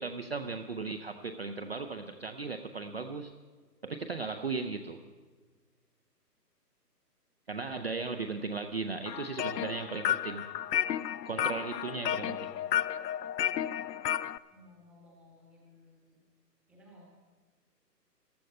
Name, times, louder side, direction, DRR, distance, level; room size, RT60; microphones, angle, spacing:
voice 1, 0.0-3.3 3.8-5.0 7.5-10.4 11.2-12.5, right 4 dB, 40° right, 6 dB, 0.5 m, -36 dB
sound 1, 9.1-14.4, left 11 dB, 75° left, 0.6 m, -32 dB
voice 2, 14.5-16.2 16.7-17.0, left 1 dB, ahead, -3 dB, 0.9 m, -58 dB
14.5 x 12.0 x 5.3 m, 1.4 s
hypercardioid pair, 155°, 49 cm